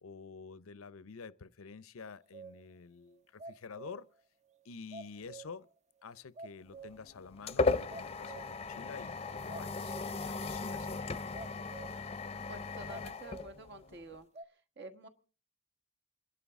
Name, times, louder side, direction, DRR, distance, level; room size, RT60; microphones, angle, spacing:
voice 1, 0.0-4.1 4.6-5.7 6.0-9.9 10.2-11.2, left 5 dB, 85° left, 0.6 m, -49 dB
sound 1, 2.3-2.6 3.2-4.2 4.5-4.6 4.9-5.7 6.1-6.2 6.4-7.2 7.5-7.6 7.9-8.7 9.0-9.1 9.5-10.3 10.6-10.7 11.3-12.1 12.9-13.5 14.3-14.4, right 3 dB, 35° right, 0.7 m, -49 dB
sound 2, 6.7-14.1, left 3 dB, 30° left, 0.6 m, -37 dB
voice 2, 12.5-14.3 14.8-15.1, right 2 dB, 60° right, 1.6 m, -49 dB
28.0 x 11.5 x 3.6 m
head